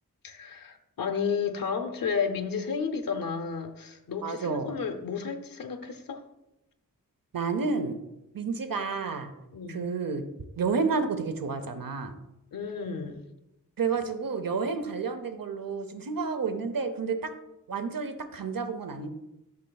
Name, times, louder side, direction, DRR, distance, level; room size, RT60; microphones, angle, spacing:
voice 1, 0.2-6.2 9.5-9.8 12.5-13.2, left 6 dB, 75° left, 5 dB, 0.7 m, -32 dB
voice 2, 4.2-4.8 7.3-8.0 8.3-9.3 9.7-10.2 10.6-12.2 13.8-17.3 17.7-19.1, right 5 dB, 75° right, 8 dB, 0.8 m, -30 dB
12.5 x 6.6 x 2.3 m, 0.91 s
wide cardioid pair, 90°, 34 cm